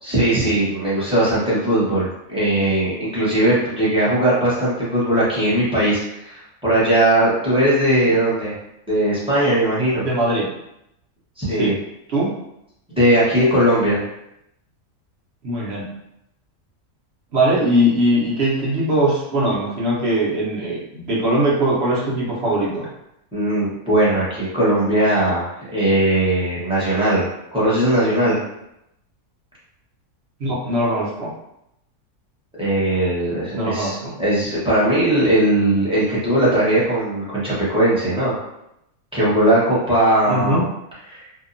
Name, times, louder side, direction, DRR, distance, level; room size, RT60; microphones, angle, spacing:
voice 1, 0.0-8.5 8.9-10.0 11.4-11.7 12.9-14.0 23.3-27.2 27.5-28.4 32.6-38.3 39.1-40.6 41.1-41.2, right 1 dB, 5° right, -9 dB, 0.7 m, -19 dB
voice 2, 10.0-10.5 11.6-11.7 12.1-12.3 15.4-15.9 17.3-22.9 30.4-31.3 33.5-34.1 40.3-40.6, right 1 dB, 55° right, -6 dB, 0.9 m, -20 dB
2.8 x 2.2 x 2.5 m, 0.83 s
omnidirectional pair, 1.5 m